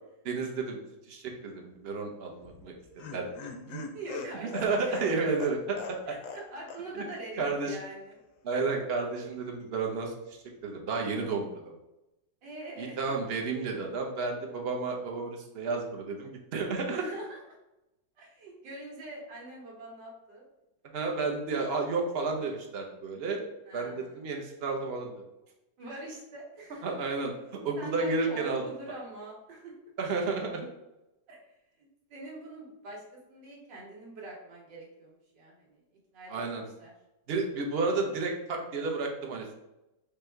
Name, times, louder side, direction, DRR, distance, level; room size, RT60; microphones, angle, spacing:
voice 1, 0.2-0.8 1.1-2.7 3.1-3.3 3.7-3.8 4.5-5.8 7.4-7.7 8.4-10.1 10.6-11.7 12.8-17.0 20.9-23.4 23.7-25.2 26.8-27.3 27.6-28.6 30.0-30.7 36.3-36.6 37.3-39.5, right 4 dB, 60° right, 2 dB, 0.6 m, -31 dB
Laughter, 2.4-6.4 6.7-6.8 7.1-7.2, left 5 dB, 70° left, 0.8 m, -41 dB
voice 2, 3.9-5.3 6.1-8.2 8.5-8.6 12.4-13.0 16.9-17.4 18.2-20.4 23.7-24.2 25.8-27.1 27.8-29.7 31.3-31.4 32.1-35.8 36.1-36.9, right 2 dB, 80° right, -3 dB, 1.9 m, -43 dB
5.2 x 2.2 x 4.4 m, 0.95 s
omnidirectional pair, 1.9 m